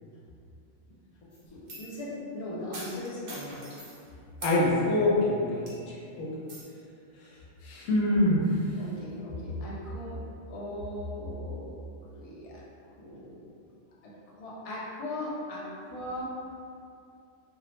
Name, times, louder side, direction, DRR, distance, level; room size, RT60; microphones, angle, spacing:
sound 1, 1.3-2.0 2.7-4.0 4.4-4.6 5.1-5.2 5.7-6.0 6.5-6.6, right 2 dB, 60° right, 0.7 m, -43 dB
voice 1, 1.5-3.6 8.7-10.2 10.5-11.8 12.1-12.6 13.0-13.5 14.0-15.6 15.9-16.3, left 1 dB, 55° left, -6 dB, 0.4 m, -38 dB
voice 2, 4.4-6.3 7.6-8.5, left 1 dB, 85° left, -5 dB, 1.0 m, -25 dB
2.4 x 2.0 x 2.9 m, 2.6 s
omnidirectional pair, 1.3 m